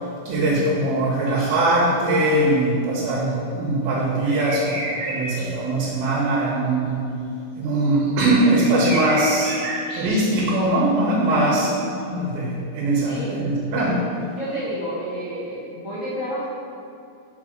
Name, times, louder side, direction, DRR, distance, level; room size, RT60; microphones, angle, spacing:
voice 1, 0.3-7.0 7.6-9.6 9.9-11.7 12.0-14.0, right 2 dB, 90° right, -4 dB, 2.8 m, -21 dB
sound 1, 4.2-5.5 7.8-10.6 11.0-11.1, right 2 dB, 65° right, 2.3 m, -31 dB
voice 2, 11.2-11.5 12.3-12.4 13.0-13.3 14.3-16.5, equal, 55° left, -14 dB, 0.8 m, -30 dB
5.5 x 4.6 x 4.8 m, 2.5 s
omnidirectional pair, 4.2 m